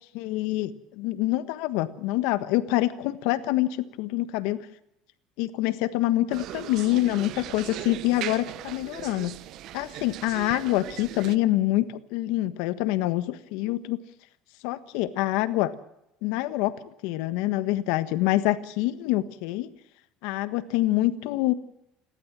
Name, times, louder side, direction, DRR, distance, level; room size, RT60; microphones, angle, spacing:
voice 1, 0.1-4.6 5.4-9.3 9.7-14.0 14.6-15.7 16.2-16.7 17.0-19.7 20.2-21.5, left 16 dB, 75° left, 12 dB, 1.4 m, -26 dB
sound 1, 6.3-11.4, right 13 dB, 60° right, 0.9 m, -38 dB
29.0 x 12.5 x 7.6 m, 0.83 s
supercardioid pair, 100°, 0 cm